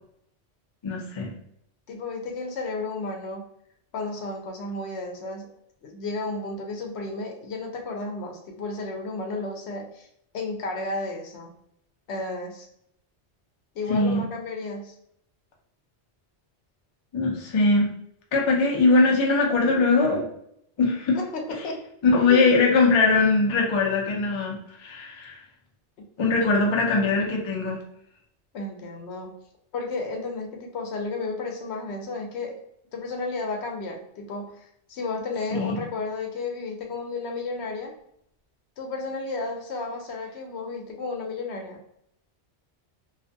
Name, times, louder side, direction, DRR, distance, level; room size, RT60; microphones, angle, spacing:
voice 1, 0.8-1.3 13.9-14.2 17.1-17.9 18.3-20.3 20.8-21.2 22.0-25.4 26.2-27.8 35.5-35.8, left 3 dB, 40° left, -1 dB, 0.4 m, -21 dB
voice 2, 1.9-3.4 3.9-5.5 5.8-10.1 10.3-11.5 12.1-12.7 13.7-14.9 21.1-21.8 22.2-22.4 26.4-26.6 28.5-29.3 29.7-32.6 32.9-37.9 38.8-41.8, left 3 dB, 70° left, 1 dB, 0.9 m, -33 dB
2.4 x 2.2 x 2.6 m, 0.73 s
omnidirectional pair, 1.2 m